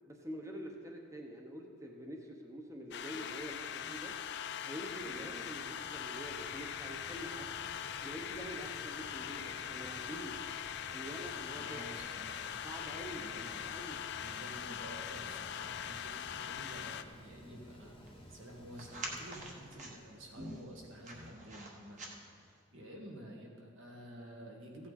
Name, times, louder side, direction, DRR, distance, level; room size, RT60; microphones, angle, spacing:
voice 1, 0.1-4.1 4.6-7.6 8.0-10.4 10.9-11.9 12.6-14.0, equal, 15° right, 2 dB, 0.9 m, -46 dB
sound 1, 2.9-17.0, left 9 dB, 55° left, 0.4 m, -42 dB
sound 2, 3.6-22.6, right 1 dB, 35° right, 1.2 m, -53 dB
Mechanical fan, 4.8-21.1, equal, 25° left, 1.0 m, -56 dB
voice 2, 11.6-12.4 13.1-13.6 14.2-24.9, right 1 dB, 70° right, 0 dB, 1.9 m, -51 dB
15.5 x 8.5 x 4.1 m, 2.2 s
head